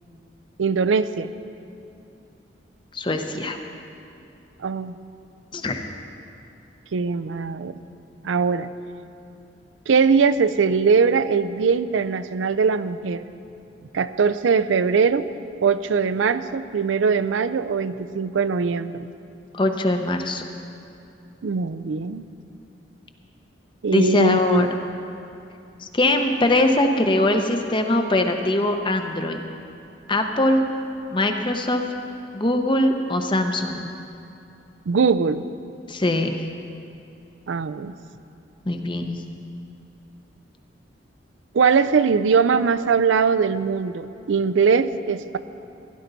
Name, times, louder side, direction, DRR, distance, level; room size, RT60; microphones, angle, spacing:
voice 1, 0.6-1.3 4.6-5.0 6.9-7.8 8.2-8.7 9.9-13.3 13.9-15.3 15.6-19.1 21.4-22.2 23.8-24.7 34.9-35.4 37.5-37.9 41.5-45.4, right 5 dB, 90° right, 13 dB, 0.4 m, -21 dB
voice 2, 2.9-3.6 5.5-5.8 19.5-20.4 23.9-24.7 25.8-29.4 30.1-30.7 31.1-31.8 32.3-33.9 35.9-36.3 38.7-39.2, left 1 dB, 25° left, 5 dB, 0.7 m, -21 dB
16.0 x 11.0 x 4.0 m, 2.7 s
head